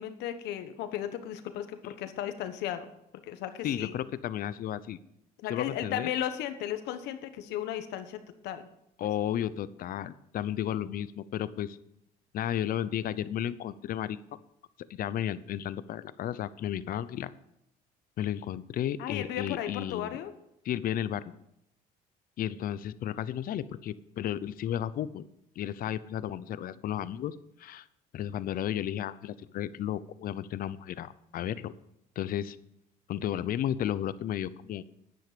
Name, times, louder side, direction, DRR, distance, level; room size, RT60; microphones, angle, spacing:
voice 1, 0.0-2.9 3.3-3.9 5.4-8.7 19.0-20.3, left 11 dB, 85° left, 9 dB, 1.2 m, -35 dB
voice 2, 3.6-5.0 5.5-6.1 9.0-11.8 12.3-14.4 15.0-17.3 18.2-20.2 20.6-21.3 22.4-25.2 25.6-27.9 28.1-31.7 32.2-32.6 33.1-34.8, left 11 dB, 60° left, 16 dB, 0.7 m, -33 dB
10.5 x 9.3 x 5.1 m, 0.81 s
cardioid pair, 110°, 17 cm